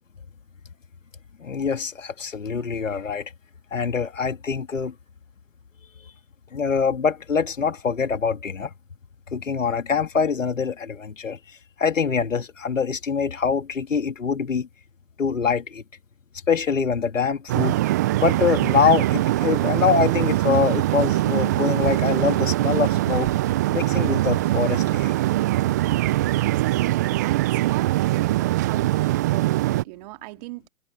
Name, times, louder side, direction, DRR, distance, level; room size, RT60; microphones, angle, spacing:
voice 1, 1.4-3.3 3.7-4.9 6.5-8.7 9.3-11.4 11.8-14.7 15.2-15.8 16.5-17.8 18.2-23.3 23.7-25.1, left 6 dB, 70° left, 3.1 m, -24 dB
sound 1, 17.5-29.8, right 16 dB, 15° right, 0.5 m, -22 dB
voice 2, 26.4-30.6, right 22 dB, 30° right, 2.1 m, -38 dB
figure-of-eight pair, 130°, 40 cm